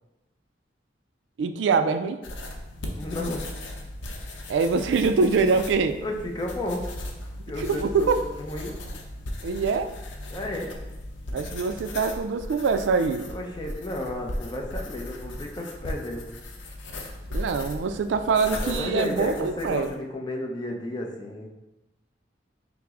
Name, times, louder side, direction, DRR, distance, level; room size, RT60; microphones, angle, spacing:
voice 1, 1.4-2.2 4.5-6.0 7.6-8.2 9.4-9.9 11.3-13.3 17.3-19.9, right 4 dB, 75° right, 9 dB, 0.3 m, -24 dB
sound 1, 2.2-19.9, left 1 dB, 80° left, 0.6 m, -37 dB
voice 2, 3.0-3.5 6.0-6.8 7.5-8.7 10.3-10.7 13.3-16.3 18.6-21.5, left 1 dB, 25° left, 0 dB, 0.5 m, -32 dB
5.7 x 2.0 x 3.6 m, 0.99 s
head